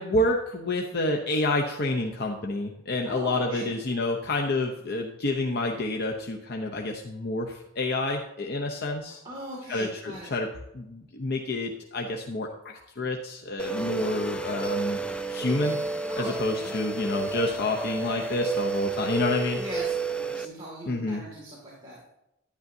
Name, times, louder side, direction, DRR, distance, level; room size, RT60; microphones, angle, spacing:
voice 1, 0.0-9.2 9.7-10.5 10.7-15.0 15.3-15.8 16.2-19.6 20.9-21.2, left 2 dB, 55° left, 1 dB, 0.7 m, -28 dB
voice 2, 3.0-3.7 9.1-10.3 16.1-16.7 19.6-22.1, right 1 dB, 25° right, -5 dB, 2.2 m, -40 dB
sound 1, 13.6-20.5, right 3 dB, 5° left, 0.4 m, -31 dB
10.5 x 10.0 x 2.7 m, 0.87 s
head